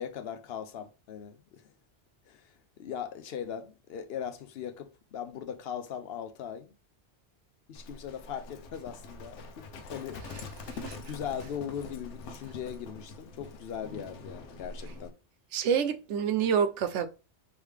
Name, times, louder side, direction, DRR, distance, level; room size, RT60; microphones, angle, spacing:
voice 1, 0.0-1.7 2.3-6.7 7.7-10.2 10.6-15.2, left 8 dB, 65° left, 0.7 m, -39 dB
Livestock farm animals working animals, 7.7-15.1, left 3 dB, 90° left, 1.0 m, -44 dB
voice 2, 15.5-17.1, right 7 dB, 80° right, 0.9 m, -27 dB
4.9 x 3.0 x 3.2 m
omnidirectional pair, 1.2 m